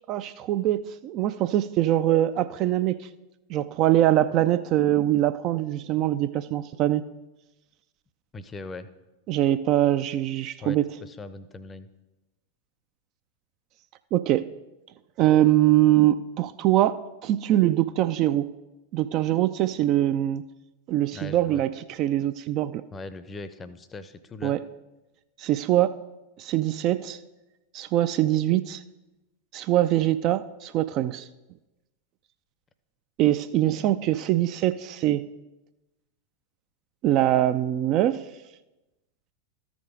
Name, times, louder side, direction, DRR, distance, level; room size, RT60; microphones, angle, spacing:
voice 1, 0.1-3.1 3.5-7.0 9.3-10.8 14.1-14.5 15.2-18.5 18.9-20.4 20.9-21.7 22.0-22.8 24.4-24.6 25.4-25.9 26.4-27.2 27.7-28.8 29.5-31.3 33.2-35.3 37.0-38.2, right 13 dB, 40° right, 12 dB, 0.3 m, -23 dB
voice 2, 8.3-8.9 10.6-11.9 21.1-21.6 22.9-24.6, left 3 dB, 20° left, 13 dB, 0.6 m, -40 dB
13.0 x 5.1 x 4.9 m, 1.0 s
figure-of-eight pair, 90°, 0 cm